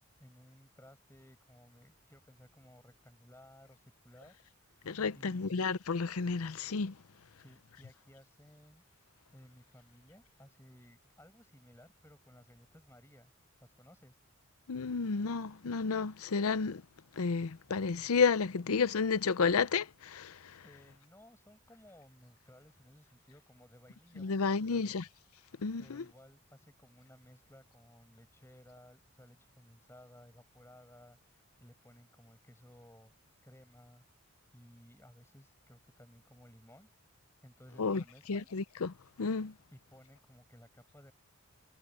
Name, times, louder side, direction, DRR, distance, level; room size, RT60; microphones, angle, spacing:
voice 1, 0.2-4.8 5.1-5.7 7.4-8.8 9.3-13.3 13.6-14.2 20.6-25.0 25.8-33.1 33.4-34.0 34.5-36.9 37.4-38.5 39.7-41.1, equal, 10° left, 7.2 m, -58 dB
voice 2, 4.9-7.0 14.7-16.8 17.2-20.6 24.2-25.0 25.6-26.0 37.8-38.0 38.3-39.5, left 5 dB, 80° left, 0.6 m, -31 dB
head